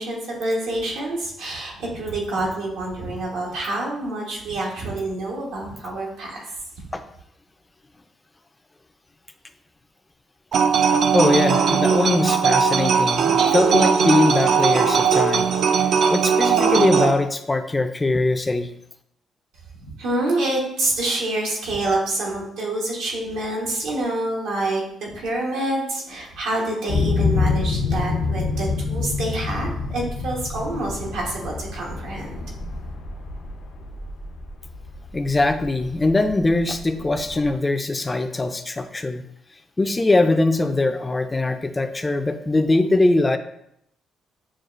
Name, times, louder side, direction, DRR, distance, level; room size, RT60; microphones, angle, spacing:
voice 1, 0.0-6.4 19.8-32.3, right 2 dB, 90° right, -2 dB, 1.0 m, -27 dB
sound 1, 10.5-17.1, right 6 dB, 65° right, 0.3 m, -19 dB
voice 2, 11.1-15.5 16.1-18.7 35.1-39.2 39.8-43.4, left 2 dB, 20° left, 8 dB, 0.3 m, -21 dB
sound 2, 26.9-37.6, left 4 dB, 80° left, 0.6 m, -27 dB
6.2 x 2.3 x 2.4 m, 0.75 s
cardioid pair, 90°, 0 cm